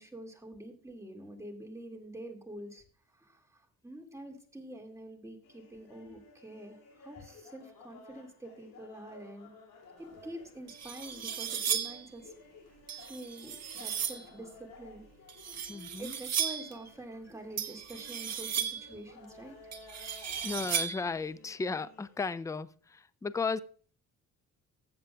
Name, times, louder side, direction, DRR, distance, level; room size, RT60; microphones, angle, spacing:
voice 1, 0.0-9.5 10.0-12.3 13.1-15.0 16.0-19.6, right 1 dB, 10° right, 1 dB, 2.1 m, -46 dB
sound 1, 5.4-22.4, left 3 dB, 85° left, 2.7 m, -55 dB
sound 2, 10.2-10.3 10.7-12.1 12.9-14.3 15.3-16.7 17.6-18.9 19.7-21.1, right 8 dB, 50° right, 1.4 m, -35 dB
voice 2, 15.7-16.2 20.4-23.6, left 4 dB, 10° left, 17 dB, 0.4 m, -35 dB
14.5 x 7.7 x 2.3 m, 0.43 s
cardioid pair, 90°, 33 cm